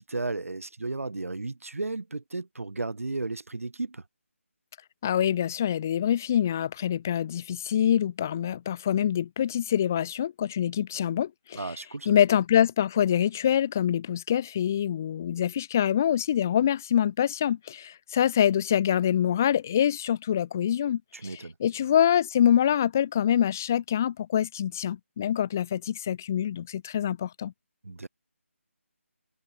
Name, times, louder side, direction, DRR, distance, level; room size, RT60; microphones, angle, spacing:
voice 1, 0.0-4.0 11.6-12.1 21.1-21.5 27.8-28.1, right 3 dB, 85° right, 5.5 m, -34 dB
voice 2, 5.0-11.6 12.1-27.5, left 10 dB, 10° left, 0.5 m, -25 dB
figure-of-eight pair, 175°, 7 cm